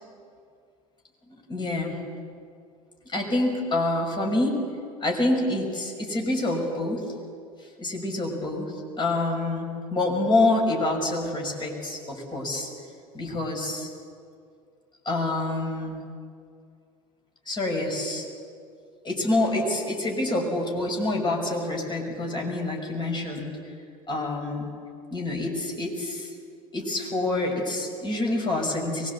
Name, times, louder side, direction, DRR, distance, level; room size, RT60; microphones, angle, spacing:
voice 1, 1.5-2.0 3.1-4.6 5.0-7.1 7.6-12.7 13.1-13.9 15.0-16.0 17.5-18.3 19.0-23.5 24.1-24.7 25.1-26.3 26.7-29.1, left 2 dB, 25° left, 1 dB, 6.2 m, -27 dB
23.0 x 21.5 x 8.3 m, 2.3 s
figure-of-eight pair, 75°, 18 cm